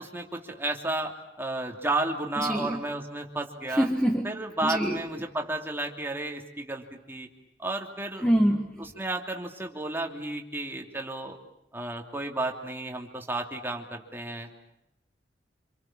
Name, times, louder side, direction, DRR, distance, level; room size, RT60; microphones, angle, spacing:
voice 1, 0.0-3.9 4.2-7.3 7.6-8.3 8.8-11.4 11.7-14.6, right 2 dB, 15° right, 2 dB, 3.0 m, -32 dB
voice 2, 3.8-4.3 4.6-5.0 8.2-8.7, equal, 5° left, 3 dB, 1.7 m, -24 dB
28.0 x 27.5 x 7.4 m, 0.82 s
head